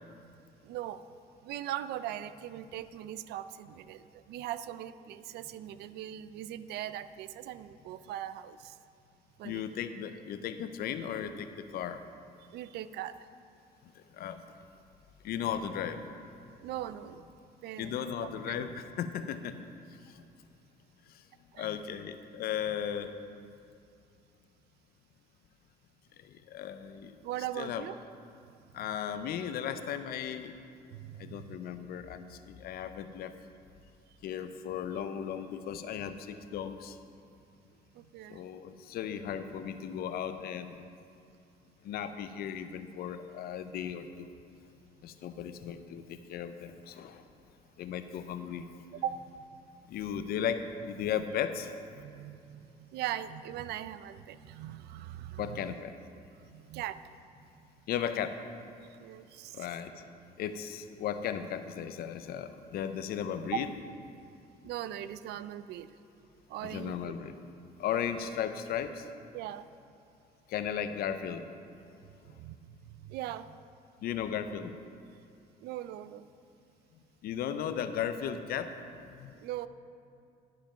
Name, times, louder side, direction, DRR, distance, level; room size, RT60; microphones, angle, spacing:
voice 1, 0.6-1.0 1.4-8.8 9.4-9.6 12.5-13.2 16.6-17.3 17.6-18.0 18.6-18.7 21.5-21.7 27.2-28.0 30.9-31.6 37.9-38.4 49.0-49.2 50.2-50.3 52.0-55.7 56.5-57.0 59.0-59.7 63.5-63.6 64.6-65.9 66.5-67.1 67.9-68.0 69.3-69.7 72.2-72.8 73.0-73.6 75.6-76.3 79.4-79.7, right 12 dB, 75° right, 14 dB, 0.4 m, -40 dB
voice 2, 9.4-12.0 14.2-14.4 15.2-16.0 17.8-19.5 21.6-23.1 26.5-27.1 27.6-27.9 28.7-30.5 31.2-33.3 34.2-37.0 38.3-40.9 41.8-44.3 45.0-47.2 47.8-48.7 49.9-51.7 55.4-55.9 57.9-58.4 59.5-59.9 60.4-63.7 66.6-67.3 67.8-69.0 70.5-71.5 74.0-74.7 77.2-78.7 79.2-79.3, left 9 dB, 65° left, 10 dB, 0.6 m, -36 dB
11.5 x 5.1 x 5.7 m, 2.5 s
cardioid pair, 110°, 17 cm